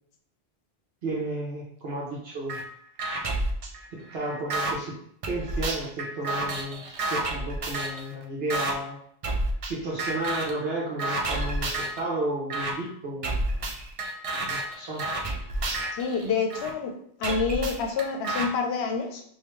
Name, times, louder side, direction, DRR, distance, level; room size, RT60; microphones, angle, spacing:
voice 1, 1.0-2.6 3.9-5.0 5.3-6.8 7.1-9.0 9.7-13.7 14.4-15.0, right 2 dB, 70° right, -5 dB, 1.0 m, -32 dB
sound 1, 2.5-2.6 3.0-4.7 5.2-8.0 8.5-8.7 9.2-9.7 10.0-10.6 11.0-12.0 12.5-12.7 13.2-16.7 17.2-18.5, right 2 dB, 50° right, 0.4 m, -30 dB
voice 2, 16.0-16.9 17.2-19.2, left 5 dB, 85° left, 3 dB, 0.8 m, -27 dB
3.4 x 2.5 x 3.0 m, 0.67 s
omnidirectional pair, 1.1 m